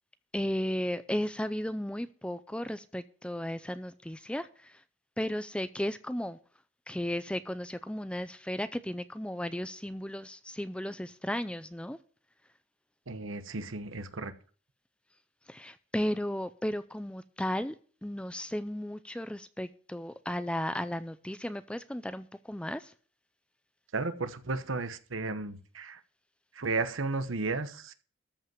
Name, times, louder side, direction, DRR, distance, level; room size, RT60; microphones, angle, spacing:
voice 1, 0.3-4.8 5.2-6.4 6.9-12.0 15.5-17.8 18.0-22.9, left 1 dB, 5° left, 0.4 m, -35 dB
voice 2, 13.1-14.3 23.9-26.0 26.5-27.9, right 3 dB, 75° right, 1.1 m, -34 dB
13.5 x 5.4 x 7.5 m
head